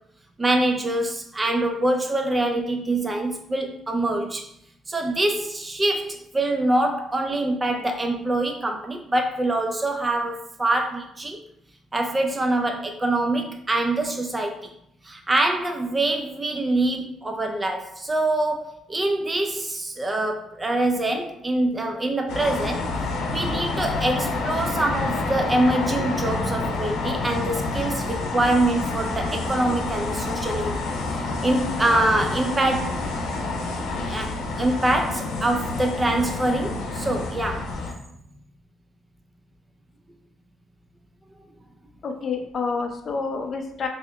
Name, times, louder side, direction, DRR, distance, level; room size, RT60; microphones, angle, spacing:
voice 1, 0.4-4.5 4.9-11.4 11.9-14.7 15.0-22.9 23.3-30.8 31.1-33.0 34.1-37.7, right 2 dB, 20° right, 3 dB, 0.4 m, -24 dB
sound 1, 22.3-37.9, left 3 dB, 90° left, 0.7 m, -28 dB
voice 2, 42.0-43.9, left 4 dB, 40° left, 4 dB, 0.5 m, -28 dB
3.3 x 2.8 x 3.4 m, 0.73 s
cardioid pair, 125°, 0 cm